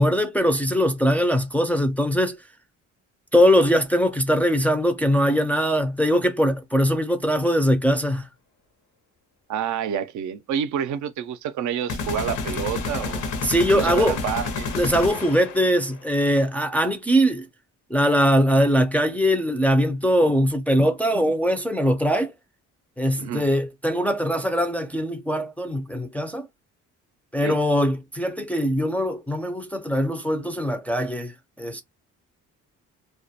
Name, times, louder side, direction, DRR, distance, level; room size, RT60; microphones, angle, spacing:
voice 1, 0.0-2.4 3.3-8.3 13.4-14.2 14.7-17.5 17.9-22.3 23.0-26.5 27.3-31.3 31.6-31.8, equal, 5° left, 0.3 m, -21 dB
voice 2, 9.5-13.3 13.7-14.7 23.2-23.4 27.4-27.6, right 8 dB, 75° right, 0.5 m, -28 dB
sound 1, 11.9-15.8, left 4 dB, 85° left, 0.8 m, -29 dB
2.2 x 2.1 x 2.7 m
cardioid pair, 90°, 30 cm